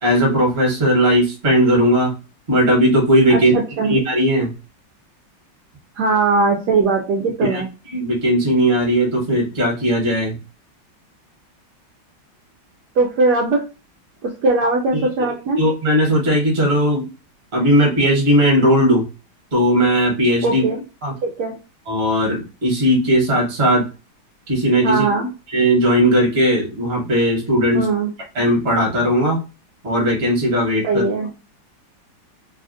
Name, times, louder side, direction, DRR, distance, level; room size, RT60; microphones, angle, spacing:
voice 1, 0.0-2.1 2.5-3.5 3.9-4.5 7.5-7.6 7.9-10.4 14.9-15.1 15.6-17.0 17.5-19.1 19.5-20.6 21.0-21.1 21.9-23.9 24.5-25.0 25.5-27.8 28.3-29.4 29.8-31.0, equal, 35° right, -1 dB, 1.3 m, -17 dB
voice 2, 3.3-3.9 6.0-7.7 13.0-13.6 14.2-15.6 20.4-20.8 21.2-21.6 24.8-25.3 27.7-28.1 30.8-31.3, right 3 dB, 75° right, 0 dB, 0.9 m, -19 dB
3.3 x 2.4 x 2.5 m, 0.32 s
omnidirectional pair, 2.2 m